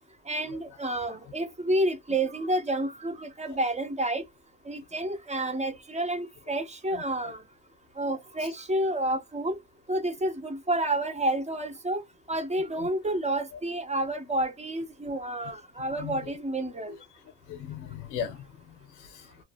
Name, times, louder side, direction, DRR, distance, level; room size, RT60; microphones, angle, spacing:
voice 1, 0.3-4.2 4.7-7.4 8.0-9.6 9.9-12.0 12.3-16.9, right 1 dB, 20° right, 0.7 m, -29 dB
voice 2, 6.9-7.3 12.8-12.9 13.5-13.6 16.0-16.3 17.5-19.4, left 8 dB, 90° left, 0.6 m, -39 dB
2.5 x 2.2 x 2.2 m
cardioid pair, 90°, 30 cm